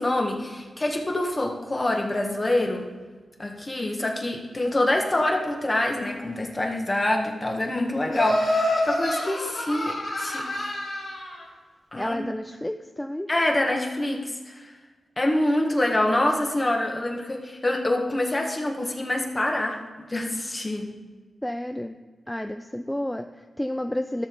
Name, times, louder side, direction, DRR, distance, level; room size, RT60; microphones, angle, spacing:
voice 1, 0.0-2.9 3.4-10.8 11.9-12.2 13.3-14.6 15.2-19.8 20.1-20.9, left 1 dB, 30° left, 1 dB, 1.7 m, -26 dB
Laughter, 8.1-11.3, left 1 dB, 75° left, 3.3 m, -27 dB
voice 2, 12.0-13.3 21.4-21.9 22.3-24.3, left 1 dB, 10° left, 7 dB, 0.4 m, -30 dB
13.0 x 6.9 x 3.9 m, 1.4 s
cardioid pair, 60°, 0 cm